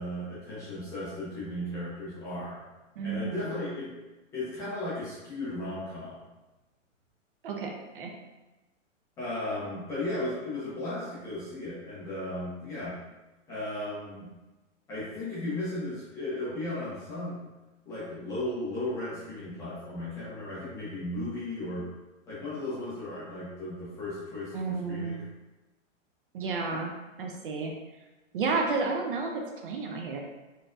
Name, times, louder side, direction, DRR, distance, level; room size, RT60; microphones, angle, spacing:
voice 1, 0.0-2.6 3.0-3.9 4.3-6.2 9.2-13.0 13.5-14.3 14.9-17.5 17.9-21.9 22.3-25.2, left 1 dB, 10° left, -10 dB, 0.5 m, -35 dB
voice 2, 3.0-3.6 7.4-8.1 24.5-25.2 26.3-26.9 27.2-27.7 28.3-30.2, right 4 dB, 45° right, 2 dB, 0.5 m, -31 dB
4.2 x 2.8 x 2.4 m, 1.1 s
hypercardioid pair, 150°, 39 cm